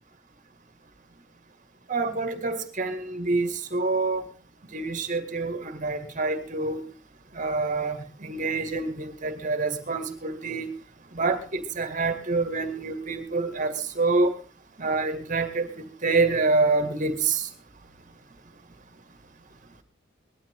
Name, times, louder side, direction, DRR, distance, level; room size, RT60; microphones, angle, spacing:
voice 1, 1.9-4.2 4.7-6.8 7.3-10.7 11.1-14.3 14.8-17.5, right 3 dB, 40° right, 9 dB, 2.1 m, -27 dB
20.0 x 13.0 x 3.7 m, 0.33 s
head